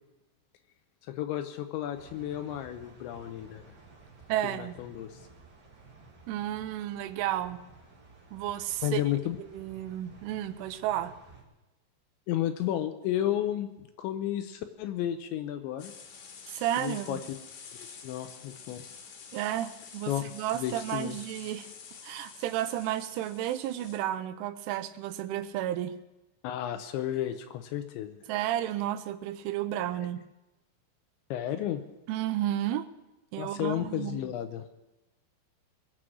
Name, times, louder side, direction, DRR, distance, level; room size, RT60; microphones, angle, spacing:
voice 1, 1.0-3.6 4.4-5.3 8.8-9.4 12.3-15.9 16.8-17.2 17.7-18.8 20.1-20.2 20.6-21.2 26.4-28.2 30.0-30.1 31.3-31.8 33.4-34.6, left 12 dB, 80° left, 8 dB, 2.8 m, -32 dB
sound 1, 1.9-11.4, right 4 dB, 45° right, 1.3 m, -54 dB
voice 2, 4.3-4.7 6.3-7.6 8.3-9.0 9.4-11.1 16.5-17.2 19.3-21.7 22.0-25.9 28.3-30.2 32.1-32.9 33.3-34.3, right 12 dB, 85° right, 12 dB, 3.0 m, -32 dB
sound 2, 15.8-24.0, left 6 dB, 65° left, 3.2 m, -48 dB
22.0 x 7.8 x 6.2 m, 1.0 s
omnidirectional pair, 5.7 m